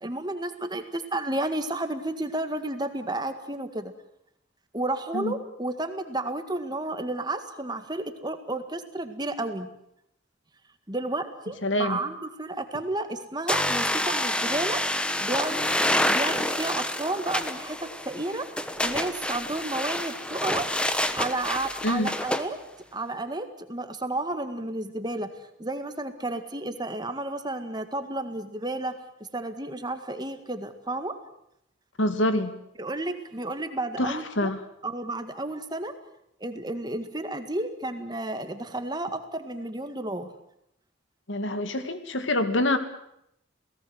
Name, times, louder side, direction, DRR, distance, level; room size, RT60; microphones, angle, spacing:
voice 1, 0.0-3.9 4.7-9.7 10.9-14.8 15.2-15.7 16.1-18.5 18.8-20.7 21.1-22.6 22.9-25.3 25.6-29.0 29.3-31.1 32.8-34.5 34.8-35.9 36.4-40.3, right 2 dB, 20° right, 8 dB, 1.9 m, -32 dB
voice 2, 11.6-12.0 21.8-22.1 32.0-32.5 34.0-34.6 41.3-42.8, left 1 dB, 80° left, 9 dB, 2.3 m, -26 dB
sound 1, 13.5-22.5, left 1 dB, 5° left, 1.2 m, -28 dB
28.0 x 18.0 x 8.0 m, 0.77 s
head